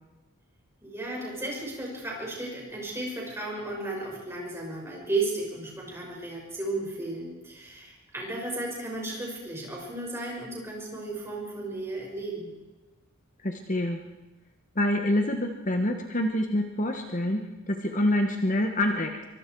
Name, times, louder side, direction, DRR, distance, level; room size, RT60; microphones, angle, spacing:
voice 1, 0.8-12.6, right 2 dB, 10° right, -2 dB, 6.0 m, -34 dB
voice 2, 13.4-14.0 14.7-17.4 17.7-19.1, left 1 dB, 35° left, 4 dB, 1.3 m, -26 dB
24.5 x 24.5 x 4.7 m, 1.1 s
head